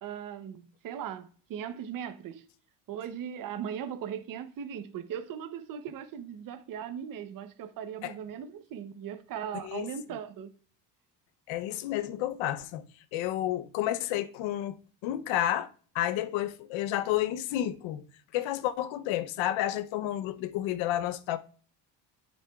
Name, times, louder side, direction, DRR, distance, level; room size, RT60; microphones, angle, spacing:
voice 1, 0.0-2.4 2.9-10.5, right 8 dB, 45° right, 0.8 m, -38 dB
voice 2, 11.5-12.8 13.1-14.8 15.0-15.7 15.9-18.0 18.3-21.4, left 13 dB, 85° left, 0.8 m, -30 dB
9.1 x 7.2 x 2.3 m
cardioid pair, 145°, 45 cm